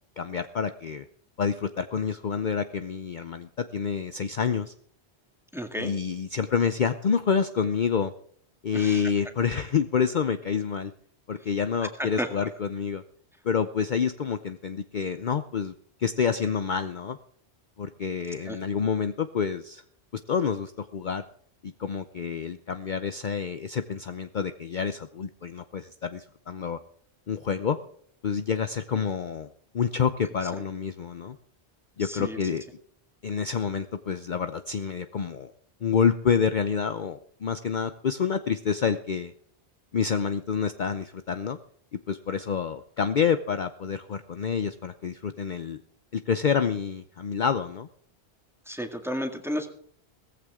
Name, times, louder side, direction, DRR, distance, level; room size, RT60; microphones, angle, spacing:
voice 1, 0.2-1.0 1.4-4.7 5.8-8.1 8.6-10.9 11.3-13.0 13.4-15.7 16.0-17.2 17.8-19.8 20.3-21.2 21.6-26.8 27.3-27.8 28.2-29.5 29.7-31.4 32.0-32.6 33.2-35.5 35.8-39.3 39.9-41.6 42.1-45.8 46.1-47.9, left 6 dB, 50° left, 10 dB, 0.8 m, -28 dB
voice 2, 5.5-5.9 8.7-9.0 12.0-12.5 18.5-18.6 30.5-30.6 32.0-32.4 48.7-49.7, equal, ahead, 4 dB, 1.9 m, -32 dB
17.5 x 15.0 x 3.7 m, 0.63 s
omnidirectional pair, 1.1 m